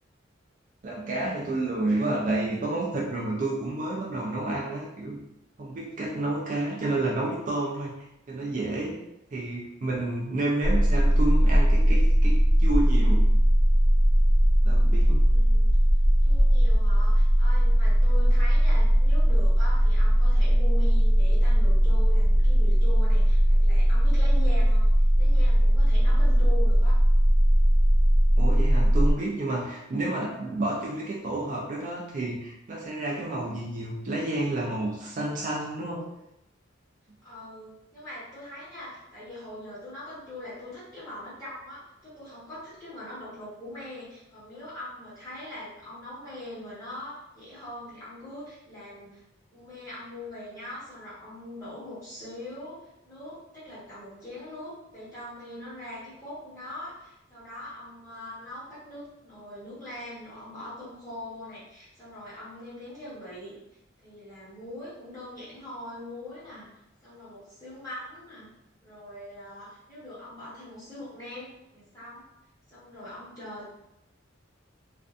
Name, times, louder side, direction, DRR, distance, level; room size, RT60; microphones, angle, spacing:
voice 1, 0.8-5.2 5.6-8.0 8.3-9.0 9.3-13.3 14.6-15.3 28.3-36.0, right 2 dB, 40° right, -3 dB, 0.4 m, -30 dB
sound 1, 10.6-29.1, equal, 50° left, 0.4 m, -19 dB
voice 2, 15.2-15.7 16.2-24.9 25.2-27.0 29.6-29.8 37.2-49.2 49.5-52.8 53.0-63.5 64.0-66.7 67.0-68.5 68.8-72.2 72.7-73.7, left 1 dB, 15° left, -11 dB, 1.2 m, -42 dB
2.5 x 2.2 x 2.4 m, 0.84 s
head